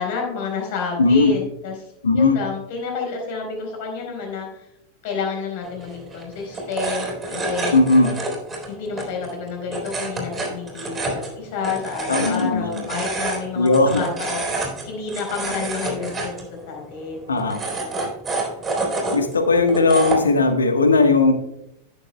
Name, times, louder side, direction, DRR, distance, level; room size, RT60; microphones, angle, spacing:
voice 1, 0.0-1.7 2.1-4.6 5.0-7.7 8.7-13.7 13.9-14.5 14.9-18.0, left 5 dB, 50° left, 2 dB, 4.0 m, -30 dB
voice 2, 1.0-1.3 2.0-2.4 7.7-8.1 12.1-12.8 13.5-14.0 17.3-17.6 19.1-21.3, left 3 dB, 70° left, 7 dB, 1.3 m, -17 dB
sound 1, 5.6-20.4, right 2 dB, 15° right, 3.8 m, -29 dB
17.0 x 7.1 x 2.2 m, 0.81 s
figure-of-eight pair, 90°, 0 cm